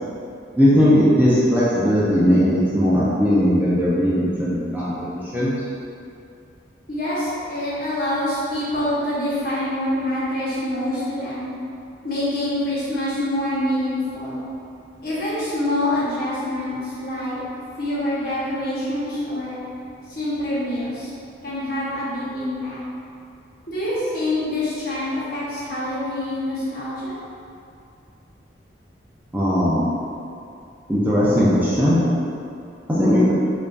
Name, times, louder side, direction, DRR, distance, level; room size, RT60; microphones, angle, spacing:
voice 1, 0.6-5.5 29.3-29.8 30.9-32.0 32.9-33.3, equal, 10° right, -9 dB, 0.5 m, -18 dB
voice 2, 6.9-11.5 12.0-14.4 15.0-17.4 17.8-19.6 20.1-21.1 21.4-22.8 23.7-27.1, left 1 dB, 50° left, -9 dB, 1.1 m, -26 dB
4.8 x 2.6 x 2.5 m, 2.6 s
head